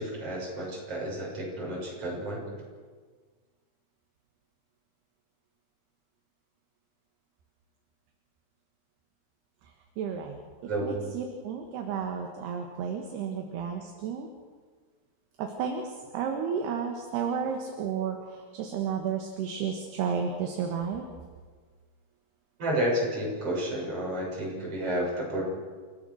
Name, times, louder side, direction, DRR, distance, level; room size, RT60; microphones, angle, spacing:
voice 1, 0.0-2.4 10.7-11.0 22.6-25.4, right 1 dB, 30° right, -3 dB, 7.4 m, -31 dB
voice 2, 10.0-10.4 10.8-14.3 15.4-15.8 16.1-21.1, right 7 dB, 70° right, 3 dB, 3.4 m, -32 dB
29.5 x 16.5 x 6.4 m, 1.5 s
omnidirectional pair, 5.2 m